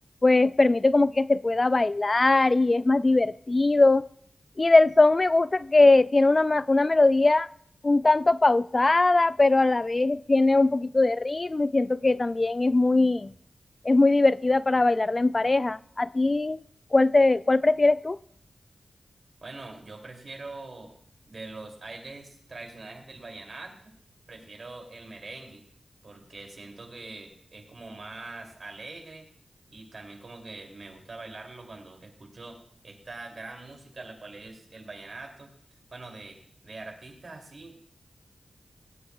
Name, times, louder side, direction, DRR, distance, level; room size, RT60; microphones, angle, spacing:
voice 1, 0.2-4.1 4.6-7.5 7.8-13.3 13.8-16.6 16.9-18.2, left 2 dB, 35° left, 0.3 m, -21 dB
voice 2, 19.4-20.9 21.3-23.9 24.3-25.6 26.0-29.3 29.7-35.5 35.9-37.8, right 3 dB, 60° right, 2.6 m, -43 dB
19.5 x 8.5 x 2.3 m
cardioid pair, 60°, 0 cm